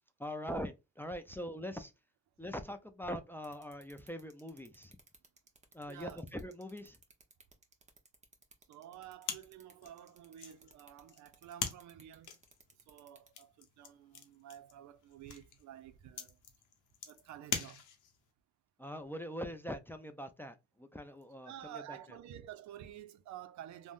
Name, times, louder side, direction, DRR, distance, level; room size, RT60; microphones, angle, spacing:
voice 1, 0.2-1.9 2.4-4.9 5.7-7.0 18.8-22.0, equal, 5° left, 0.3 m, -42 dB
sound 1, 3.4-13.3, right 3 dB, 25° right, 0.8 m, -60 dB
voice 2, 5.9-6.3 8.7-12.4 12.9-16.4 17.1-17.8 21.5-23.9, right 11 dB, 70° right, 0.5 m, -51 dB
sound 2, 9.2-18.3, left 8 dB, 85° left, 0.7 m, -44 dB
3.4 x 2.1 x 2.5 m
cardioid pair, 90°, 30 cm